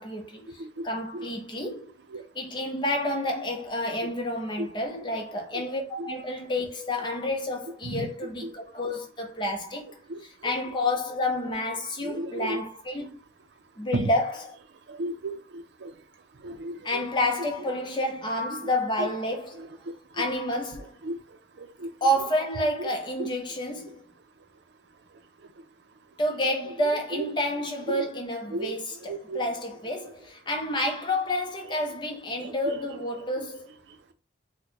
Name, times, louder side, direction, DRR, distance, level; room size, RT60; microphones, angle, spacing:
voice 1, 0.0-1.9 2.3-9.9 10.4-13.1 13.8-14.4 16.8-19.7 20.1-20.9 22.0-24.1 26.2-33.7, left 1 dB, 25° left, 0.7 m, -29 dB
voice 2, 12.0-12.6 13.9-14.1 14.9-15.9 16.4-17.0 17.6-17.7 19.0-19.1 19.6-19.7 20.2-20.3 21.0-21.1 21.8-21.9 22.2-22.3 22.8-22.9 23.2-23.3 26.8-27.2 27.5-28.1 28.5-28.8 29.1-29.5 30.0-30.1 31.7-31.8 32.4-33.0 33.4-33.5, right 2 dB, 75° right, 0.5 m, -34 dB
4.3 x 2.2 x 2.9 m
head